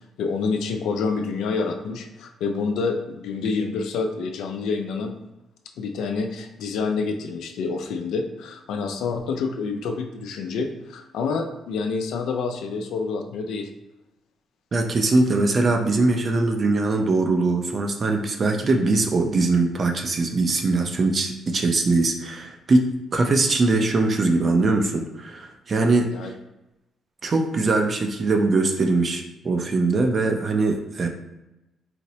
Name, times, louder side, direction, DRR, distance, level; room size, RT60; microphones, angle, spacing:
voice 1, 0.2-5.1 5.8-13.7 26.1-26.3, left 4 dB, 80° left, 4 dB, 0.4 m, -27 dB
voice 2, 14.7-22.9 23.1-26.1 27.2-31.1, right 3 dB, 40° right, 4 dB, 0.5 m, -21 dB
4.1 x 2.0 x 2.7 m, 0.95 s
cardioid pair, 90°, 0 cm